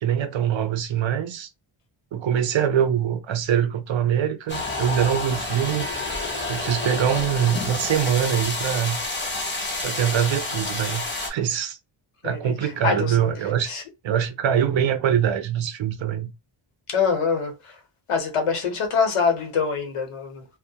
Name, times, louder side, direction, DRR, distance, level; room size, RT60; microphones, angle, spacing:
voice 1, 0.0-1.5 2.1-5.9 6.5-9.0 9.8-11.8 12.2-13.7 14.0-16.3, right 9 dB, 65° right, 0.5 m, -23 dB
sound 1, 4.5-11.3, left 2 dB, 25° left, 0.5 m, -29 dB
voice 2, 12.2-13.2 13.7-13.8 16.9-17.8 18.1-20.4, left 5 dB, 90° left, 0.9 m, -24 dB
2.2 x 2.1 x 2.7 m
wide cardioid pair, 170°, 50 cm